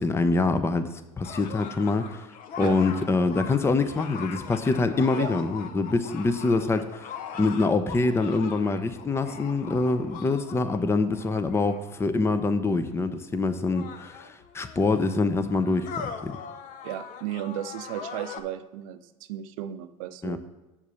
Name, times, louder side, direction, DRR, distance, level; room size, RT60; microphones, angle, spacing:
voice 1, 0.0-2.3 2.6-16.3 20.2-20.4, left 3 dB, 15° left, 10 dB, 0.6 m, -25 dB
sound 1, 1.2-12.0 12.9-13.0 13.6-18.4, left 6 dB, 50° left, 0.9 m, -41 dB
voice 2, 16.8-19.0 19.3-20.4, right 12 dB, 70° right, 11 dB, 0.6 m, -34 dB
7.1 x 4.7 x 6.8 m, 1.1 s
hypercardioid pair, 85°, 18 cm